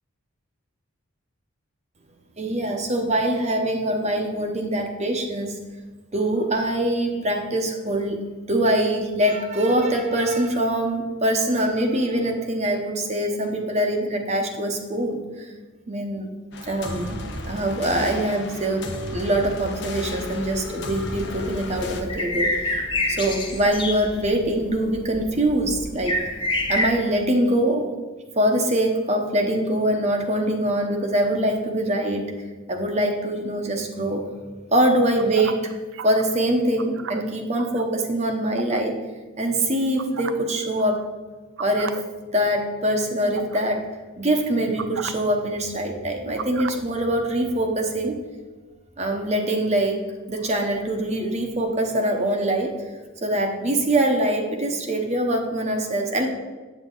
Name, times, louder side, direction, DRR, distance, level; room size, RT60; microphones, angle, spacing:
voice 1, 2.4-5.6 6.1-8.2 8.5-15.5 15.9-16.3 16.7-17.2 17.5-22.8 23.1-26.3 26.7-27.9 28.3-32.3 32.7-34.3 34.7-35.7 36.0-39.0 39.4-41.0 41.6-42.0 42.3-43.9 44.2-48.2 49.0-52.8 53.2-56.3, right 1 dB, 30° right, 2 dB, 1.0 m, -23 dB
sound 1, 16.5-22.0, left 1 dB, 55° left, 1.0 m, -34 dB
sound 2, 20.1-27.0, left 1 dB, 20° left, 0.9 m, -29 dB
sound 3, 35.2-36.2 36.8-37.8 38.6-38.8 40.0-40.5 40.8-41.0 41.6-42.0 42.4-42.6 43.3-43.6 44.8-45.1 46.4-46.8, right 6 dB, 60° right, 0.4 m, -34 dB
8.4 x 8.3 x 3.9 m, 1.3 s
head